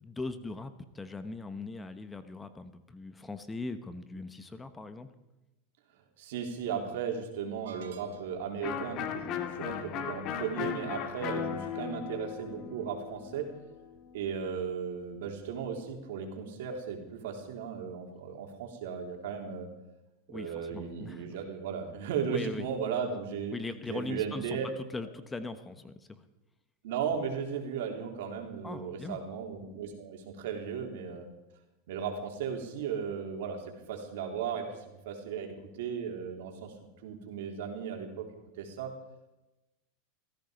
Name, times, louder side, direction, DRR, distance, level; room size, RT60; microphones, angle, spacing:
voice 1, 0.0-5.1 20.3-21.4 22.3-22.7 23.5-26.3 28.6-29.2, left 3 dB, 10° left, 11 dB, 1.1 m, -40 dB
voice 2, 6.2-13.5 14.1-19.7 20.3-23.6 23.9-24.7 26.8-31.3 31.9-36.7 37.0-38.3 38.6-38.9, right 7 dB, 75° right, 3 dB, 3.7 m, -36 dB
sound 1, 7.6-8.6, right 5 dB, 90° right, 1.4 m, -51 dB
Electric guitar, 8.6-14.2, left 8 dB, 45° left, 2.0 m, -37 dB
16.5 x 15.0 x 5.2 m, 0.98 s
supercardioid pair, 130°, 0 cm